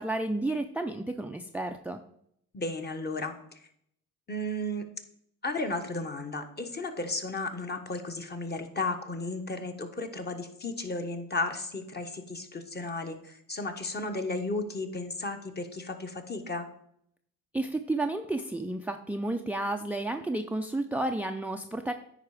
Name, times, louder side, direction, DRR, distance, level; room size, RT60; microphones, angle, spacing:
voice 1, 0.0-2.0 17.5-21.9, right 2 dB, 5° right, 7 dB, 0.5 m, -31 dB
voice 2, 2.5-3.3 4.3-4.9 5.4-16.7, left 2 dB, 30° left, 6 dB, 1.3 m, -34 dB
9.4 x 4.8 x 4.9 m, 0.71 s
supercardioid pair, 80°, 35 cm